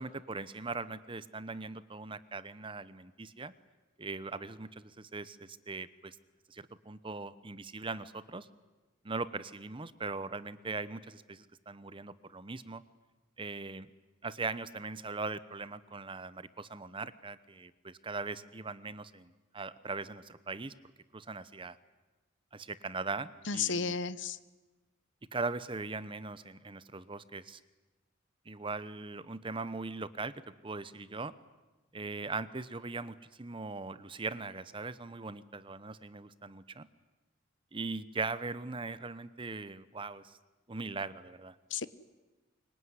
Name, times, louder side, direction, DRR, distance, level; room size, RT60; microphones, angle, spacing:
voice 1, 0.0-3.5 4.0-6.2 6.5-8.5 9.0-12.8 13.4-13.9 14.2-20.7 21.1-21.8 22.5-23.9 25.3-27.6 28.5-30.3 30.6-31.3 31.9-36.9 37.7-40.3 40.7-41.5, right 3 dB, 25° right, 15 dB, 0.9 m, -40 dB
voice 2, 23.5-24.4 41.7-41.9, left 5 dB, 65° left, 17 dB, 0.9 m, -33 dB
25.0 x 23.0 x 9.7 m, 1.2 s
head